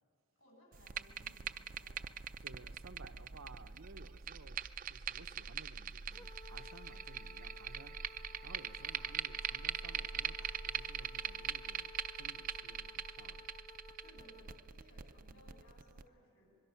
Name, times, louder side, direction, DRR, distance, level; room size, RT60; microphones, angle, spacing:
voice 1, 0.4-2.1 14.0-16.6, equal, 70° left, 7.8 m, -63 dB
sound 1, 0.7-16.0, right 8 dB, 40° right, 0.5 m, -42 dB
voice 2, 2.4-13.5 15.2-15.4, right 3 dB, 75° right, 0.9 m, -57 dB
sound 2, 6.1-14.6, left 4 dB, 15° left, 0.4 m, -57 dB
24.5 x 22.5 x 5.8 m
head